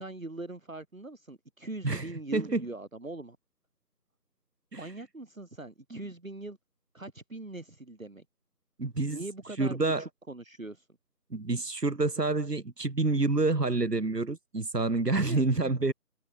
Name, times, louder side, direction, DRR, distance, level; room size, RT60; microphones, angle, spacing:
voice 1, 0.0-3.4 4.7-6.6 6.9-8.2 9.1-10.9 15.1-15.4, right 2 dB, 55° right, 1.4 m, -41 dB
voice 2, 8.8-9.2 9.6-10.0 11.3-15.9, right 3 dB, 85° right, 1.6 m, -28 dB
figure-of-eight pair, 175°, 47 cm